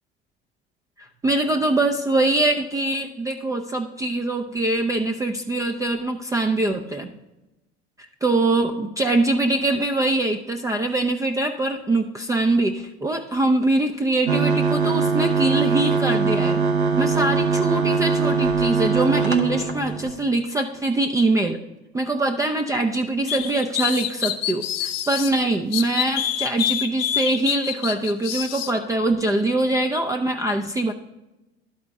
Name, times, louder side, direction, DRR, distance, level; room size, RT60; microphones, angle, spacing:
voice 1, 1.0-7.1 8.2-16.6 17.0-21.6 21.9-30.9, right 2 dB, 10° right, 4 dB, 0.4 m, -23 dB
sound 1, 14.3-20.2, right 4 dB, 80° right, 1.0 m, -21 dB
sound 2, 23.3-25.3 25.7-28.7, left 10 dB, 65° left, 0.7 m, -26 dB
12.5 x 4.2 x 3.5 m, 1.0 s
figure-of-eight pair, 65°, 32 cm